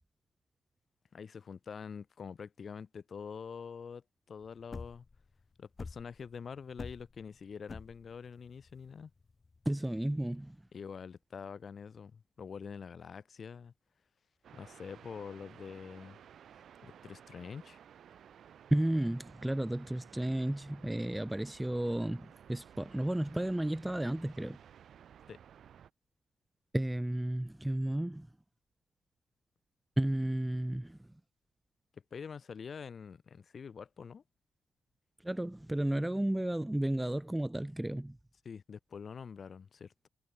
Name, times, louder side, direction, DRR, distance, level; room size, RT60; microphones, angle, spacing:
voice 1, 1.1-5.1 5.6-9.1 10.7-13.7 14.5-16.2 16.8-17.8 25.3-25.4 31.9-34.2 38.4-40.1, left 6 dB, 45° left, 1.4 m, -46 dB
sound 1, 4.4-10.4, left 4 dB, 30° left, 1.2 m, -47 dB
voice 2, 9.7-10.6 18.7-24.6 26.7-28.3 30.0-31.0 35.2-38.2, right 1 dB, 5° right, 0.3 m, -33 dB
sound 2, 14.4-25.9, right 9 dB, 60° right, 1.3 m, -56 dB
cardioid pair, 90°, 0 cm